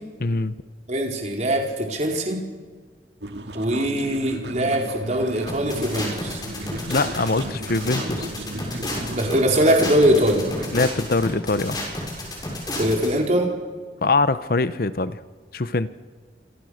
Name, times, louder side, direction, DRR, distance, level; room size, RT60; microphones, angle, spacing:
voice 1, 0.2-0.5 6.9-8.3 10.7-11.8 14.0-15.2 15.5-15.9, left 3 dB, 55° left, 14 dB, 0.8 m, -23 dB
voice 2, 0.9-2.4 3.5-6.4 9.1-10.4 12.7-13.5, equal, 40° right, 1 dB, 4.5 m, -21 dB
sound 1, 3.2-10.9, right 1 dB, 75° right, 2.3 m, -35 dB
sound 2, 5.5-13.1, left 1 dB, 25° left, 6.9 m, -31 dB
28.0 x 26.5 x 6.5 m, 1.5 s
head